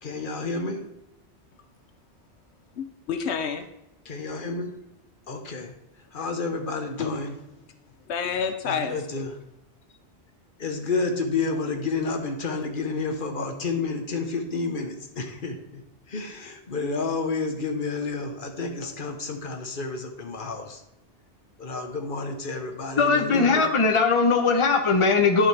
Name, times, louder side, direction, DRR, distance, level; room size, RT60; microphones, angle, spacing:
voice 1, 0.0-0.8 4.0-4.8 5.3-5.7 6.1-7.4 8.6-9.3 10.6-15.8 16.1-20.8 21.6-23.7, left 3 dB, 50° left, 5 dB, 1.2 m, -30 dB
voice 2, 2.8-3.7 8.1-9.2, left 6 dB, 85° left, 7 dB, 1.0 m, -29 dB
voice 3, 23.0-25.5, left 4 dB, 30° left, 3 dB, 0.9 m, -20 dB
11.0 x 5.6 x 3.4 m, 0.88 s
omnidirectional pair, 1.1 m